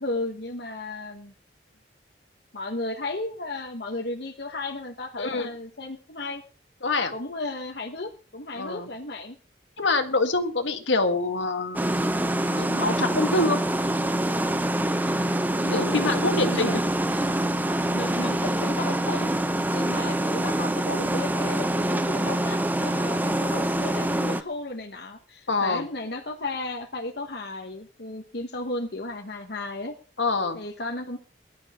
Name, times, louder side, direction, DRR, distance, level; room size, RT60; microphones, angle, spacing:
voice 1, 0.0-1.3 2.5-6.4 7.1-9.4 15.5-16.8 17.9-19.3 19.7-29.9 30.5-31.2, left 2 dB, 60° left, 2 dB, 1.3 m, -34 dB
voice 2, 5.2-5.5 6.8-7.1 8.6-8.9 9.8-11.9 12.5-13.6 15.7-16.8 25.5-25.9 30.2-30.6, left 3 dB, 75° left, 6 dB, 1.8 m, -25 dB
sound 1, 11.7-24.4, right 1 dB, 10° right, 0.6 m, -25 dB
19.5 x 11.5 x 3.7 m, 0.38 s
head